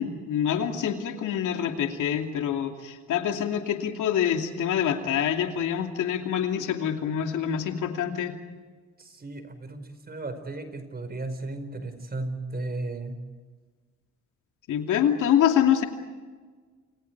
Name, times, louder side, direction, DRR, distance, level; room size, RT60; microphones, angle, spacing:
voice 1, 0.0-8.3 14.7-15.8, left 9 dB, 80° left, 4 dB, 2.7 m, -26 dB
voice 2, 9.0-13.2, right 2 dB, 30° right, 9 dB, 5.0 m, -35 dB
29.0 x 27.5 x 4.8 m, 1.5 s
cardioid pair, 90°, 30 cm